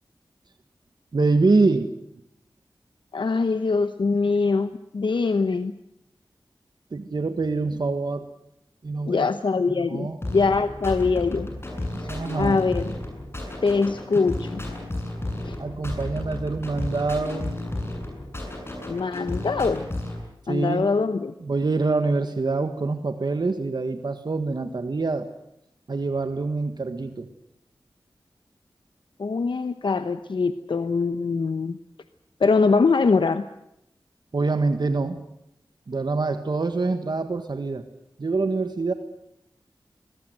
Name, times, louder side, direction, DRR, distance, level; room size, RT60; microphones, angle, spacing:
voice 1, 1.1-1.9 6.9-8.3 8.8-9.3 9.9-10.2 12.1-12.6 15.6-17.6 20.5-20.9 21.4-25.3 25.9-27.3 34.3-35.2 35.9-37.8 38.2-38.9, right 3 dB, 60° right, 8 dB, 1.6 m, -25 dB
voice 2, 3.1-5.7 9.1-11.5 12.0-12.1 12.4-12.9 13.6-14.6 15.4-15.5 18.9-19.8 20.5-21.3 29.2-31.8 32.4-33.4, left 4 dB, 75° left, 10 dB, 1.0 m, -23 dB
sound 1, 10.2-20.2, left 1 dB, 30° left, 7.9 m, -33 dB
22.5 x 21.5 x 8.0 m, 0.82 s
wide cardioid pair, 80°, 8 cm